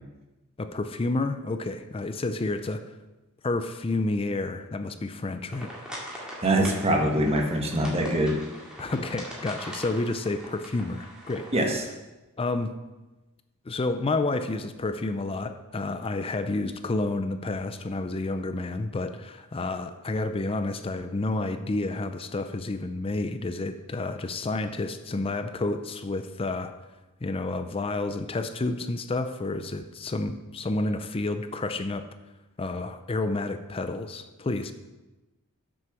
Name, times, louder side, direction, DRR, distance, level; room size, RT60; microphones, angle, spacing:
voice 1, 0.6-2.9 3.4-5.7 8.8-11.5 12.4-12.7 13.7-26.7 27.2-32.1 32.6-34.7, left 2 dB, 25° left, 9 dB, 0.4 m, -30 dB
sound 1, 5.5-11.7, equal, 5° right, 2.2 m, -41 dB
voice 2, 6.4-8.4 11.5-11.8, right 1 dB, 30° right, 2 dB, 1.3 m, -23 dB
7.6 x 6.3 x 6.0 m, 1.1 s
head